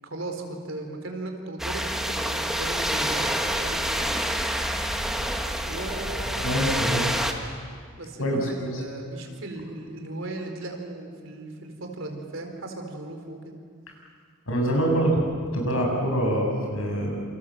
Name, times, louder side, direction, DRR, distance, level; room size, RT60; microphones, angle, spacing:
voice 1, 0.0-4.2 5.7-6.6 8.0-13.5, right 2 dB, 70° right, 3 dB, 4.3 m, -37 dB
sound 1, 1.6-7.3, equal, ahead, 1.7 m, -27 dB
voice 2, 6.4-7.1 8.2-8.8 14.5-15.2 15.5-17.2, right 1 dB, 80° left, 1 dB, 7.5 m, -25 dB
28.0 x 27.5 x 7.7 m, 2.1 s
head